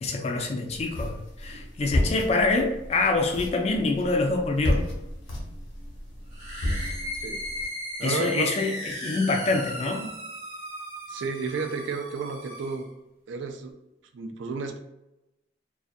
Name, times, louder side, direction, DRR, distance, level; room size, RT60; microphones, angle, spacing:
voice 1, 0.0-4.8 8.0-10.1, left 3 dB, 35° left, 3 dB, 0.3 m, -26 dB
sound 1, 0.7-7.7, left 1 dB, 85° left, 0.8 m, -32 dB
sound 2, 6.3-12.9, equal, 35° right, 0.8 m, -37 dB
voice 2, 8.0-8.6 11.1-12.9 13.3-13.7 14.1-14.8, right 4 dB, 80° right, 6 dB, 0.4 m, -32 dB
2.5 x 2.2 x 2.5 m, 0.93 s
head